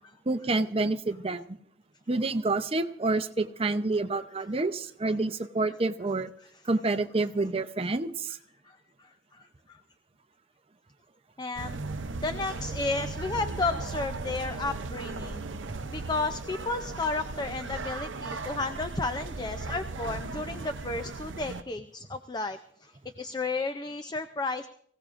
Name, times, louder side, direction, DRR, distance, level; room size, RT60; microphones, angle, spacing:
voice 1, 0.3-1.4 2.1-6.3 6.6-8.4, right 3 dB, 30° right, 8 dB, 0.6 m, -28 dB
voice 2, 9.3-9.8 11.4-11.9 12.2-15.5 15.9-22.9 23.2-24.7, left 3 dB, 20° left, 9 dB, 0.4 m, -33 dB
sound 1, 11.6-21.6, right 3 dB, 80° right, 0.6 m, -37 dB
24.5 x 16.5 x 2.5 m, 0.68 s
head